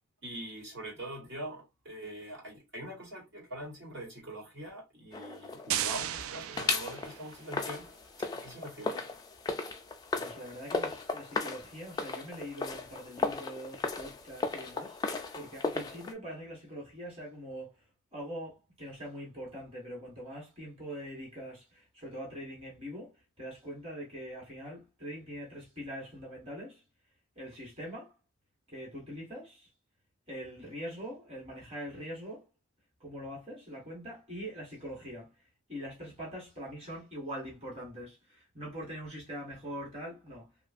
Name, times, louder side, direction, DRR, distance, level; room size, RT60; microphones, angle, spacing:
voice 1, 0.2-7.9 8.3-9.1, right 1 dB, 55° right, 1.4 m, -43 dB
sound 1, 5.1-6.2 6.6-16.1, left 3 dB, 20° left, 0.3 m, -36 dB
sound 2, 5.7-7.5, right 11 dB, 90° right, 0.3 m, -35 dB
voice 2, 10.1-15.0 15.3-17.8 18.1-26.8 27.3-28.1 28.7-29.7 30.3-32.5 33.0-35.3 35.7-40.5, equal, 30° right, 1.4 m, -43 dB
3.0 x 2.4 x 2.4 m
head